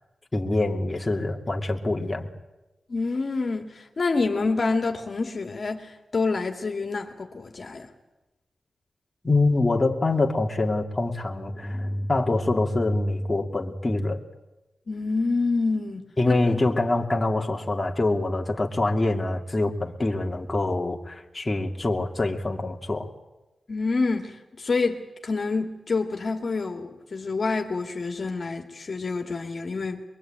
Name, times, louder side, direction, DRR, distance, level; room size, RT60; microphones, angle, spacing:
voice 1, 0.3-2.3 9.2-14.2 16.2-23.1, left 2 dB, 25° left, 2.6 m, -25 dB
voice 2, 2.9-7.9 14.9-16.6 23.7-30.1, left 3 dB, 55° left, 2.4 m, -27 dB
23.5 x 22.5 x 9.0 m
cardioid pair, 70°, 0 cm